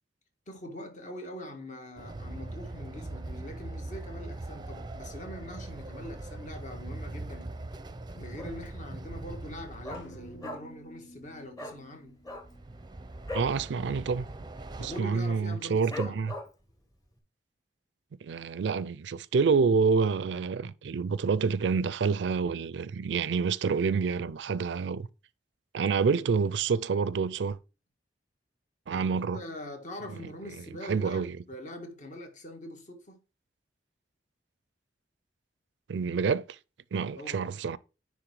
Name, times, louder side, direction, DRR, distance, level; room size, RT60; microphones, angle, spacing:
voice 1, 0.5-7.6 8.1-12.2 14.8-16.2 28.9-33.2 37.2-37.6, left 1 dB, 45° left, 1.8 m, -43 dB
Train, 2.0-10.4 12.3-15.0, right 2 dB, 25° right, 0.6 m, -41 dB
Dog, 8.4-8.8 9.1-9.2 9.4-10.9 11.1-11.3 11.5-11.8 12.2-13.6 13.9-14.1 14.4-14.8 15.2-15.3 15.9-16.7 17.2-17.3, left 2 dB, 20° left, 1.5 m, -39 dB
sound 1, 9.9-13.7, equal, 85° left, 1.3 m, -52 dB
voice 2, 13.3-14.3 14.8-16.3 18.2-25.1 25.7-27.6 28.9-29.4 30.8-31.4 35.9-36.6 36.9-37.8, right 5 dB, 75° right, 0.4 m, -28 dB
9.8 x 3.5 x 4.8 m
head